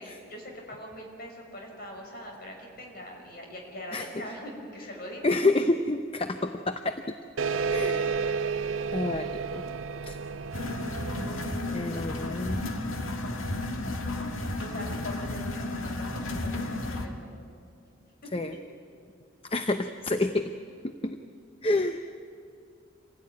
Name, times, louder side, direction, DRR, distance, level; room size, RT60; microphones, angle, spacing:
voice 1, 0.0-5.4 14.6-17.4, equal, 50° left, 1 dB, 5.6 m, -42 dB
voice 2, 3.9-4.3 5.2-7.1 7.7-8.4 8.9-9.6 10.0-10.2 11.7-12.7 18.3-18.6 19.4-20.5 20.8-21.2 21.6-22.1, left 2 dB, 25° left, 7 dB, 0.7 m, -29 dB
sound 1, 7.4-12.5, right 5 dB, 80° right, 0.8 m, -32 dB
sound 2, 10.5-17.1, left 2 dB, 85° left, 1.8 m, -33 dB
26.5 x 17.0 x 9.5 m, 2.3 s
head